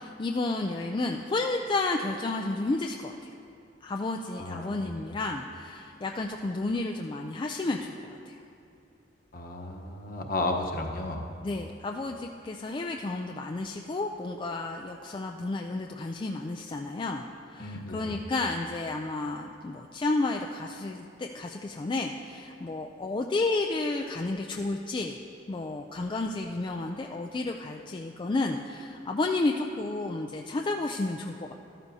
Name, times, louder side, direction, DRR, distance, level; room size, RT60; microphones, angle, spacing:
voice 1, 0.0-3.3 3.8-8.4 11.4-25.2 25.5-31.5, left 2 dB, 25° left, 2 dB, 0.3 m, -31 dB
voice 2, 4.4-5.1 9.3-11.3 17.6-18.1, left 2 dB, 50° left, 2 dB, 1.0 m, -33 dB
13.5 x 13.0 x 2.8 m, 2.7 s
head